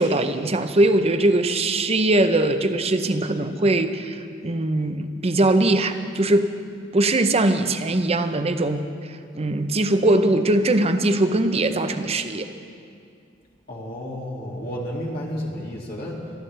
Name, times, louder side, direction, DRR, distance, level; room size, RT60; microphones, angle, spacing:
voice 1, 0.0-6.5 6.9-12.5, right 2 dB, 30° right, 8 dB, 0.7 m, -21 dB
voice 2, 13.7-16.3, equal, 50° left, -3 dB, 2.4 m, -31 dB
25.0 x 11.5 x 3.4 m, 2.4 s
head